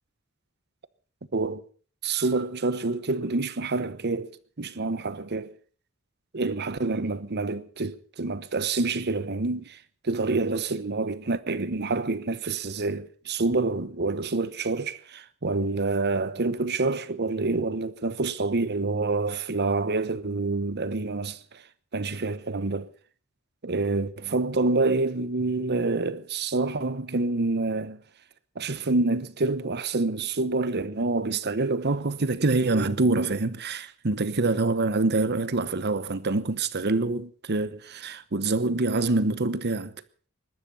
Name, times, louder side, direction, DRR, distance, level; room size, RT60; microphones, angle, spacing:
voice 1, 1.3-1.6 2.0-4.3 4.6-5.5 6.3-9.8 10.0-21.6 21.9-22.9 23.6-28.0 28.6-39.9, right 3 dB, 50° right, 1.0 m, -27 dB
21.0 x 12.5 x 5.5 m
head